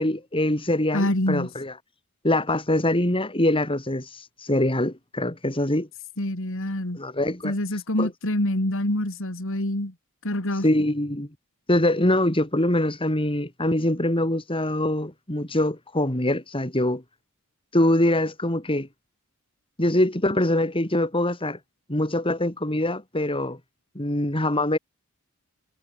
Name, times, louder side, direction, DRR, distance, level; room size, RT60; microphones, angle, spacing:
voice 1, 0.0-1.7 2.2-5.9 6.9-7.5 8.0-8.1 10.6-11.3 11.7-17.0 17.7-18.9 19.8-21.6 21.9-23.6 23.9-24.8, left 1 dB, 25° left, 4.3 m, -23 dB
voice 2, 0.9-1.5 6.2-7.0 7.4-9.9 10.2-10.7, left 1 dB, 65° left, 3.3 m, -26 dB
head